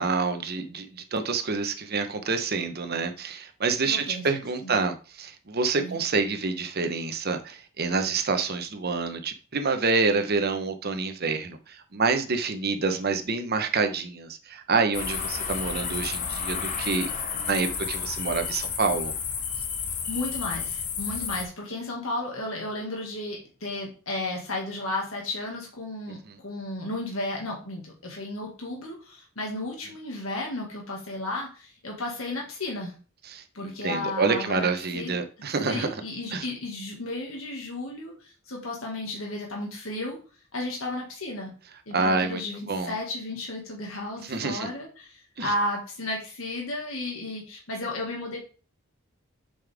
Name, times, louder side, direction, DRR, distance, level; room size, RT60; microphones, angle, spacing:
voice 1, 0.0-17.1 17.3-19.1 26.3-26.4 33.3-35.9 36.3-36.4 41.9-42.4 42.7-42.9 44.2-44.7 45.4-45.5, right 4 dB, 50° right, 1.0 m, -27 dB
voice 2, 3.9-4.3 4.6-4.8 5.8-6.0 20.1-32.9 33.5-34.7 34.9-40.2 40.5-41.5 41.9-48.4, left 2 dB, 75° left, 1.9 m, -33 dB
sound 1, 14.9-21.4, left 6 dB, 40° left, 1.1 m, -31 dB
7.3 x 5.4 x 3.5 m
head